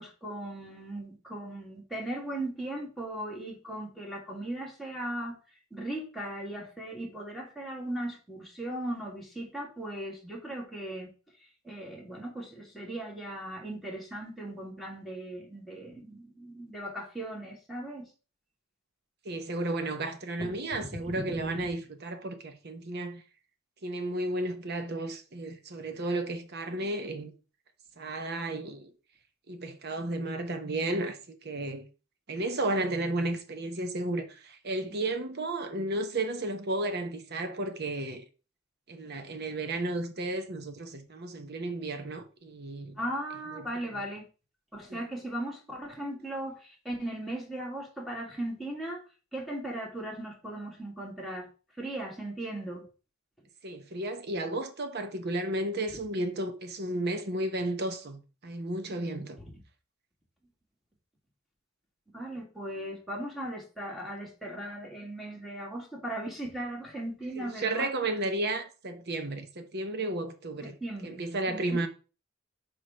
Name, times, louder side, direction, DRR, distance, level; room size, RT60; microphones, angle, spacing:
voice 1, 0.0-5.4 5.7-11.1 11.6-18.1 20.4-20.5 20.9-21.4 34.8-35.0 43.0-44.2 44.7-49.0 49.3-51.5 51.8-52.8 59.4-59.5 62.1-68.1 70.8-71.2 71.5-71.8, right 1 dB, ahead, 2.1 m, -38 dB
voice 2, 19.2-23.2 23.8-27.3 28.0-28.9 29.5-31.2 31.4-31.8 32.3-38.2 38.9-43.0 43.5-43.6 43.9-44.0 44.9-45.0 53.6-59.4 67.4-70.8 71.0-71.9, right 2 dB, 50° right, 0.9 m, -33 dB
4.7 x 4.7 x 5.7 m
head